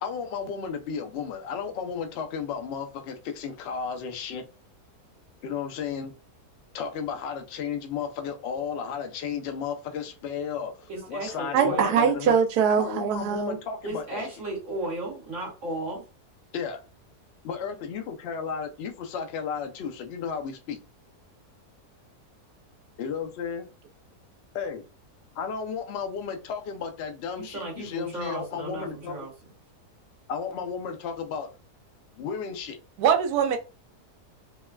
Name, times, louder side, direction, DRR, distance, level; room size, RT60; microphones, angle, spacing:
voice 1, 0.0-4.4 5.4-6.1 6.7-12.4 12.7-14.2 16.5-16.8 17.4-20.8 23.0-23.7 24.5-24.8 25.4-29.2 30.3-31.5 32.1-32.8, left 6 dB, 80° left, 0.5 m, -33 dB
voice 2, 10.9-12.0 13.8-16.0 27.4-29.3, right 2 dB, 55° right, 1.1 m, -34 dB
voice 3, 11.5-13.6 33.0-33.6, right 7 dB, 80° right, 1.1 m, -22 dB
3.2 x 2.2 x 2.2 m
omnidirectional pair, 1.7 m